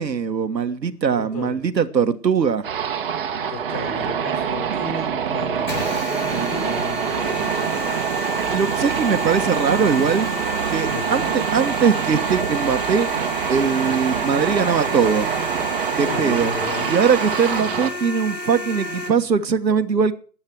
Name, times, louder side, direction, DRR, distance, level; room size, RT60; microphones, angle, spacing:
voice 1, 0.0-2.7 8.5-10.3 10.7-13.1 13.5-15.3 15.9-16.5 16.9-20.1, right 6 dB, 80° right, 1.5 m, -21 dB
voice 2, 1.2-1.6 3.5-8.0 10.9-11.3 16.0-16.9, left 3 dB, 25° left, 5.5 m, -33 dB
sound 1, 2.6-17.9, right 8 dB, 35° right, 1.6 m, -25 dB
sound 2, 5.7-19.1, left 1 dB, 80° left, 5.0 m, -31 dB
17.0 x 8.7 x 4.6 m
hypercardioid pair, 155°, 50 cm